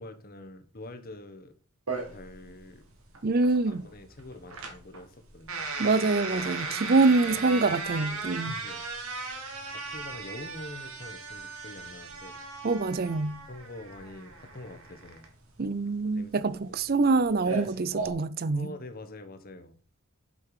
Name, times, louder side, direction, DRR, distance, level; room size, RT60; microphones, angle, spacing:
voice 1, 0.0-1.5 2.1-2.9 3.7-5.7 6.7-7.7 8.1-8.8 9.7-12.4 13.5-15.3 16.1-16.4 16.7-16.8 18.5-19.8, left 1 dB, 45° left, 1.1 m, -45 dB
sound 1, 1.9-18.1, right 4 dB, 85° right, 2.2 m, -37 dB
voice 2, 3.2-3.8 5.8-8.5 12.6-13.4 15.6-18.7, right 3 dB, 45° right, 0.5 m, -25 dB
7.6 x 5.8 x 4.9 m
head